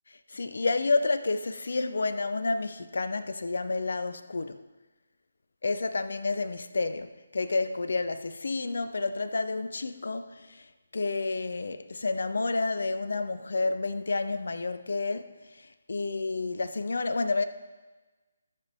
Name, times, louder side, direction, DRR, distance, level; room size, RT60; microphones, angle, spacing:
voice 1, 0.1-4.6 5.6-17.4, left 3 dB, 60° left, 0.6 m, -30 dB
16.5 x 6.0 x 3.5 m
figure-of-eight pair, 150°, 0 cm